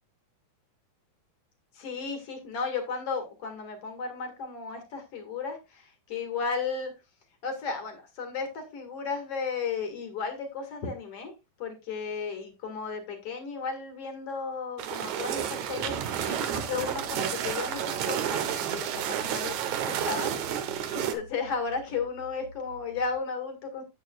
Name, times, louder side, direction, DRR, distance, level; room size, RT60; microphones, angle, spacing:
voice 1, 1.7-6.9 7.4-11.3 11.6-23.8, left 5 dB, 45° left, 5 dB, 2.5 m, -34 dB
sound 1, 14.8-21.1, right 9 dB, 70° right, 1.9 m, -31 dB
sound 2, 16.7-23.2, left 1 dB, 65° left, 3.1 m, -51 dB
11.5 x 8.2 x 2.3 m, 0.25 s
omnidirectional pair, 4.2 m